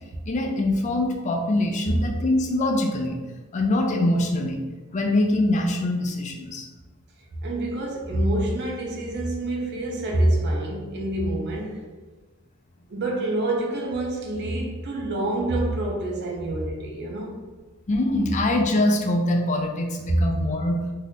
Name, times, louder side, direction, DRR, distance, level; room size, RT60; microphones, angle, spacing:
voice 1, 0.3-3.2 3.5-4.6 4.9-6.7 17.9-20.8, left 1 dB, 35° left, 2 dB, 0.4 m, -23 dB
voice 2, 7.4-11.8 12.9-17.4 20.1-20.2, right 1 dB, 50° right, -1 dB, 0.5 m, -26 dB
2.7 x 2.5 x 3.4 m, 1.3 s
head